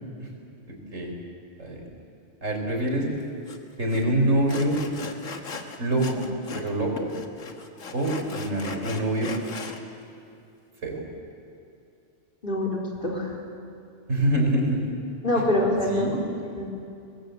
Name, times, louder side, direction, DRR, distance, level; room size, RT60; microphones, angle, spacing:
voice 1, 0.7-1.1 1.6-1.8 2.4-3.0 3.8-4.8 5.8-6.3 6.5-7.1 7.9-9.3 10.8-11.0 14.1-14.9 15.8-16.2, right 1 dB, 80° right, 1 dB, 4.6 m, -25 dB
Sawing, 3.5-3.6 3.9-4.0 4.5-6.7 7.0-9.8, left 5 dB, 90° left, 1.9 m, -38 dB
voice 2, 12.4-13.4 15.2-16.7, left 1 dB, 40° left, -2 dB, 4.3 m, -26 dB
23.0 x 20.5 x 8.0 m, 2.6 s
omnidirectional pair, 1.3 m